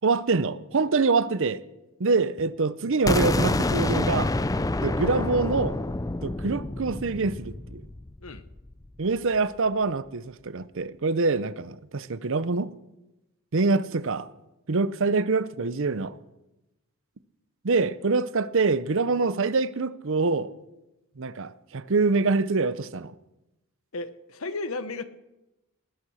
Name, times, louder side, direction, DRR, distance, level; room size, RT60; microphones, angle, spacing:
voice 1, 0.0-1.6 2.0-4.3 4.8-5.8 6.2-7.8 9.0-12.7 13.5-14.3 14.7-16.2 17.6-20.5 21.2-23.1, right 3 dB, 60° right, 0.7 m, -25 dB
sound 1, 3.1-8.8, left 2 dB, 15° left, 0.5 m, -27 dB
voice 2, 23.9-25.0, left 3 dB, 75° left, 1.1 m, -34 dB
20.0 x 10.5 x 6.4 m
head